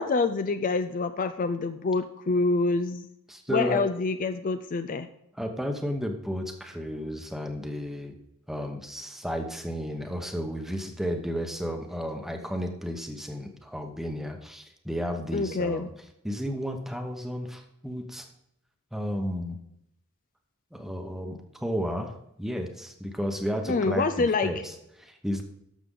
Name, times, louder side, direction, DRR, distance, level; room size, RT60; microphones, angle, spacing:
voice 1, 0.0-3.1 3.5-5.1 15.3-15.9 23.7-24.5, left 3 dB, 40° left, 10 dB, 0.4 m, -26 dB
voice 2, 3.3-3.8 5.3-8.1 8.5-15.9 16.2-18.3 18.9-19.6 20.7-25.4, equal, ahead, 4 dB, 1.0 m, -33 dB
12.5 x 6.7 x 3.8 m, 0.79 s
head